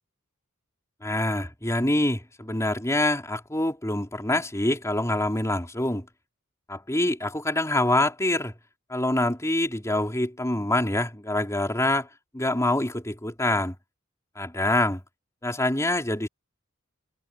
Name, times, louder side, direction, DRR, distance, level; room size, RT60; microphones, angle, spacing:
voice 1, 1.0-6.1 6.7-8.5 8.9-12.1 12.3-13.8 14.4-15.0 15.4-16.3, left 1 dB, 15° left, 3.6 m, -25 dB
head